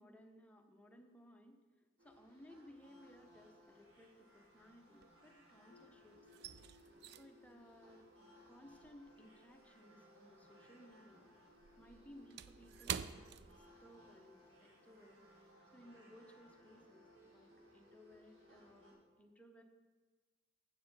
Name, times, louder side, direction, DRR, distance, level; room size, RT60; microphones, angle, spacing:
voice 1, 0.0-6.5 7.2-8.0 8.5-11.3 11.8-19.6, equal, 5° left, 3 dB, 0.8 m, -61 dB
sound 1, 2.0-18.9, equal, 85° right, 3.0 m, -64 dB
sound 2, 2.9-3.4 3.7-5.7 5.9-10.6 10.9-14.2 14.5-14.7 15.2-15.5, right 8 dB, 55° right, 0.4 m, -49 dB
sound 3, 5.7-10.4, left 6 dB, 80° left, 0.3 m, -72 dB
8.0 x 7.6 x 6.7 m, 1.3 s
head